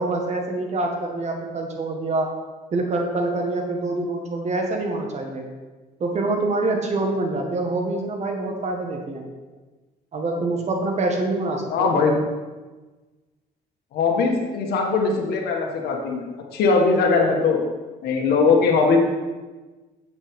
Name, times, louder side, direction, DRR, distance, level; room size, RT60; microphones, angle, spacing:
voice 1, 0.0-2.3 2.7-5.4 6.0-9.2 10.1-12.0, right 2 dB, 40° right, 2 dB, 1.7 m, -25 dB
voice 2, 11.7-12.1 13.9-16.2 16.5-17.6 18.0-19.0, left 4 dB, 70° left, 1 dB, 1.7 m, -20 dB
8.9 x 7.9 x 3.7 m, 1.3 s
cardioid pair, 110°, 17 cm